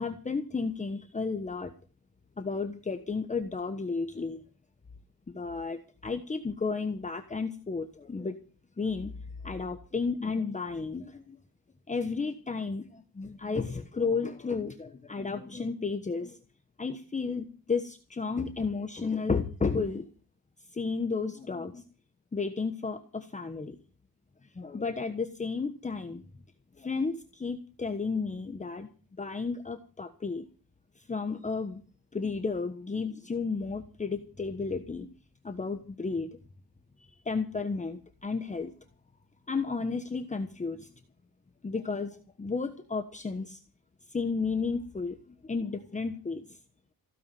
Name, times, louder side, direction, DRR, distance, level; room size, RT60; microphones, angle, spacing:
voice 1, 0.0-1.7 2.4-4.4 5.3-8.4 8.8-9.1 9.4-11.4 11.9-16.4 16.8-20.0 20.7-21.8 22.3-23.8 24.6-26.2 26.8-28.9 29.2-30.4 31.1-31.8 32.1-35.1 35.4-36.3 37.3-38.7 39.5-40.9 41.6-43.6 44.1-45.2 45.4-46.4, left 4 dB, 20° left, 7 dB, 1.2 m, -32 dB
16.0 x 9.6 x 7.7 m, 0.37 s
cardioid pair, 140°, 38 cm